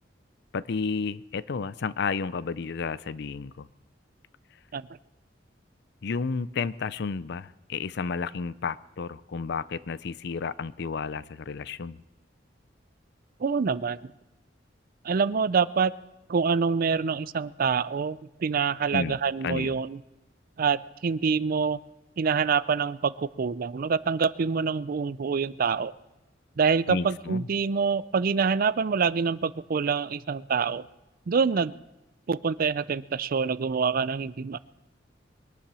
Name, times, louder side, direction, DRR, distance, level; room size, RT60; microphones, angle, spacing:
voice 1, 0.5-3.7 6.0-12.0 18.9-19.2 19.4-19.8 26.9-27.5, left 5 dB, 65° left, 18 dB, 0.5 m, -32 dB
voice 2, 13.4-14.0 15.0-15.9 16.3-20.0 20.6-21.8 22.2-25.9 26.6-30.8 31.3-31.7 32.3-34.6, right 5 dB, 50° right, 18 dB, 0.4 m, -26 dB
22.0 x 10.0 x 6.2 m, 0.99 s
head